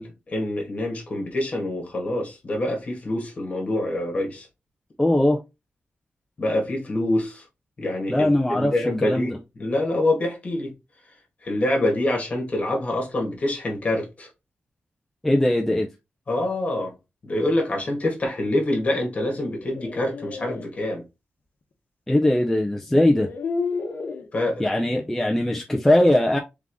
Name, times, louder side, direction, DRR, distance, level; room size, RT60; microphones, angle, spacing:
voice 1, 0.0-4.5 6.4-7.4 7.8-10.7 11.4-14.3 16.3-16.9 17.2-21.0 24.3-24.7, left 1 dB, 40° left, 1.6 m, -26 dB
voice 2, 5.0-5.4 8.1-8.7 9.0-9.3 15.2-15.9 22.1-23.3 24.6-26.4, left 1 dB, 10° left, 0.5 m, -20 dB
sound 1, 19.3-20.7 22.1-22.2 22.9-24.3, left 4 dB, 60° left, 0.9 m, -31 dB
3.7 x 3.6 x 3.6 m
wide cardioid pair, 170°, 4 cm